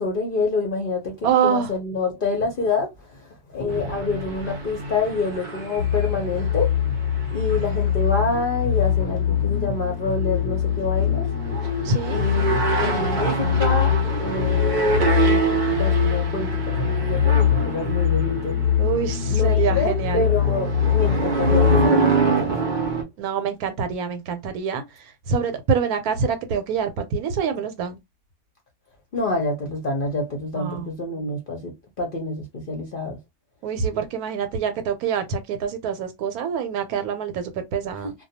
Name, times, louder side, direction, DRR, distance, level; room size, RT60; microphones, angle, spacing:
voice 1, 0.0-6.7 7.3-11.3 12.1-18.6 19.3-22.5 29.1-33.2 38.0-38.1, left 3 dB, 50° left, 0.6 m, -27 dB
voice 2, 1.2-1.7 11.8-12.2 18.8-20.2 23.2-28.0 30.5-30.9 33.6-38.1, right 6 dB, 85° right, 1.1 m, -25 dB
sound 1, 3.7-23.0, right 4 dB, 55° right, 0.5 m, -27 dB
sound 2, 5.8-21.9, left 9 dB, 90° left, 1.1 m, -23 dB
2.3 x 2.2 x 2.7 m
omnidirectional pair, 1.5 m